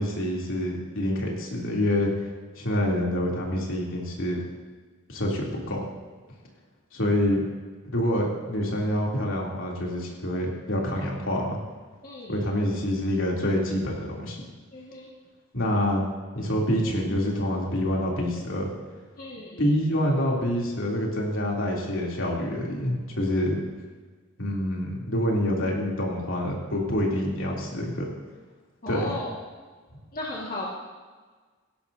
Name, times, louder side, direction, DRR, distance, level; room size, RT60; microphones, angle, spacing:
voice 1, 0.0-2.1 2.6-4.4 5.1-5.8 6.9-7.4 7.9-11.6 12.3-14.4 15.5-16.0 16.3-18.7 19.6-23.6 24.4-28.1 28.9-29.1, left 1 dB, 70° left, -3 dB, 3.1 m, -26 dB
voice 2, 12.0-12.4 14.7-15.1 19.1-19.6 28.8-29.4 30.1-30.7, left 2 dB, 40° left, -5 dB, 1.9 m, -35 dB
17.5 x 17.0 x 2.8 m, 1.4 s
head